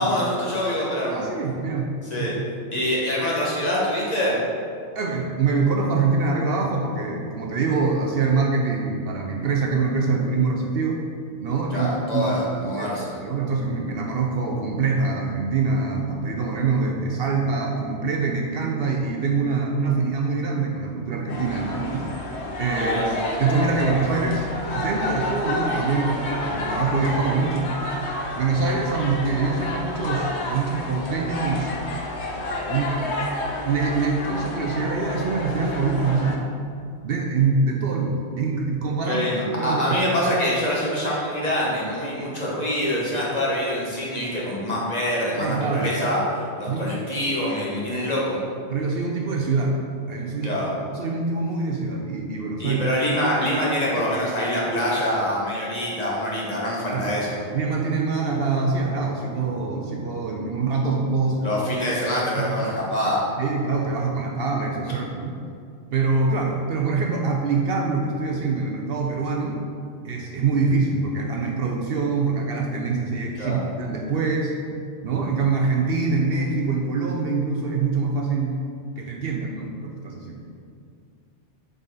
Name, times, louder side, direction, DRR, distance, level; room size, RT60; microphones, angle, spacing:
voice 1, 0.0-1.3 2.1-2.3 2.7-4.4 11.7-13.2 22.8-23.1 39.1-48.4 50.4-50.7 52.6-57.4 61.4-63.3 73.4-73.6, equal, 35° left, -6 dB, 1.4 m, -25 dB
voice 2, 1.1-1.9 2.2-2.4 4.9-11.0 11.4-11.9 12.1-12.4 12.6-22.1 22.6-23.0 23.4-27.7 28.4-31.7 32.7-33.0 33.6-36.4 37.0-39.2 39.6-40.0 45.4-45.9 46.7-46.9 48.7-49.8 50.1-50.6 50.9-52.8 56.9-57.2 57.5-61.5 62.3-62.5 63.4-65.4 65.9-69.6 70.0-74.6 75.0-78.6 79.0-80.4, right 4 dB, 60° right, 1 dB, 0.8 m, -24 dB
sound 1, 21.3-36.4, left 2 dB, 70° left, 1.0 m, -30 dB
7.2 x 4.1 x 4.0 m, 2.3 s
omnidirectional pair, 1.2 m